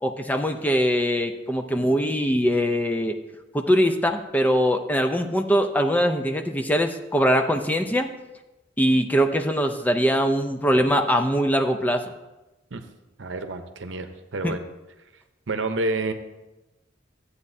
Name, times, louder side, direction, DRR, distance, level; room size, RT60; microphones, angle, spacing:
voice 1, 0.0-3.2 3.5-8.1 8.8-12.0 14.4-14.5, equal, 10° left, 5 dB, 0.5 m, -22 dB
voice 2, 13.2-14.6 15.5-16.1, right 2 dB, 75° right, 8 dB, 0.8 m, -28 dB
13.5 x 8.4 x 2.7 m, 1.1 s
head